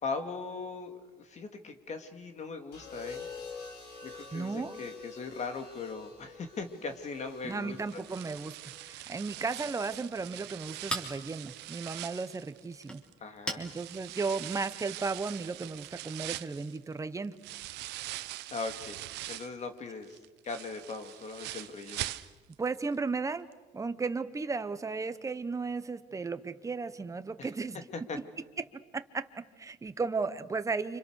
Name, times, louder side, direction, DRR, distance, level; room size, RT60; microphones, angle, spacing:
voice 1, 0.0-3.3 4.0-8.0 13.2-13.6 18.5-19.0 19.3-20.2 20.4-22.1 27.4-27.5 27.9-28.2, left 4 dB, 45° left, 7 dB, 2.6 m, -39 dB
sound 1, 2.7-10.9 12.1-12.5, left 5 dB, 80° left, 5.6 m, -48 dB
voice 2, 4.3-4.8 7.4-13.0 13.6-17.4 22.6-23.5 23.7-27.8 28.9-31.0, right 4 dB, 20° right, 11 dB, 1.2 m, -35 dB
sound 2, 7.9-13.1 13.6-19.6 20.0-22.7 22.9-23.0 23.5-23.6, right 16 dB, 85° right, 0.9 m, -42 dB
Chink clink, 9.6-15.2, equal, 5° left, 3.5 m, -43 dB
30.0 x 26.5 x 6.6 m, 1.3 s
cardioid pair, 110°, 17 cm